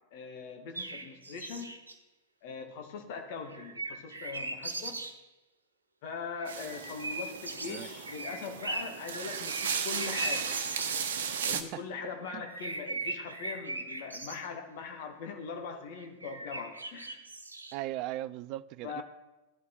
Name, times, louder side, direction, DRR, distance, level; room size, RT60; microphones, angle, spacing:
voice 1, 0.1-1.8 2.4-5.0 6.0-10.6 11.4-17.3 18.8-19.0, left 5 dB, 50° left, 2.0 m, -41 dB
sound 1, 0.7-1.9 3.5-5.2 6.4-11.0 12.1-14.5 16.0-17.7, right 2 dB, 80° right, 1.2 m, -39 dB
sound 2, 6.5-11.6, right 7 dB, 60° right, 1.1 m, -36 dB
voice 2, 17.7-19.0, right 15 dB, 40° right, 0.4 m, -38 dB
16.0 x 11.0 x 4.4 m
figure-of-eight pair, 90°, 0 cm